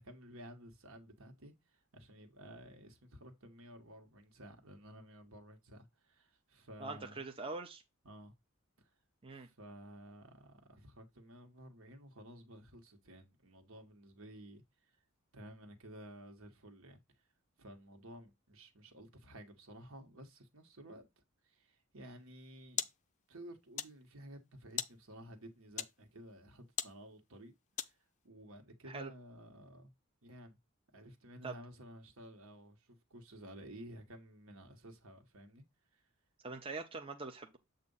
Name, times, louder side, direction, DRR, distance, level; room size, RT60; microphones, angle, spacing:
voice 1, 0.0-7.2 8.0-8.3 8.8-8.9 9.3-14.9 15.3-17.0 17.6-21.1 21.4-22.9 23.3-27.5 27.8-28.0 28.2-29.9 30.2-30.6 30.9-35.6 35.9-36.0, right 1 dB, 70° right, 1.4 m, -53 dB
voice 2, 6.8-7.8 9.2-9.5 28.9-29.1 31.4-31.6 36.4-37.6, right 3 dB, 25° right, 0.7 m, -43 dB
sound 1, 22.2-28.3, left 10 dB, 35° left, 0.4 m, -45 dB
7.6 x 2.5 x 5.4 m
head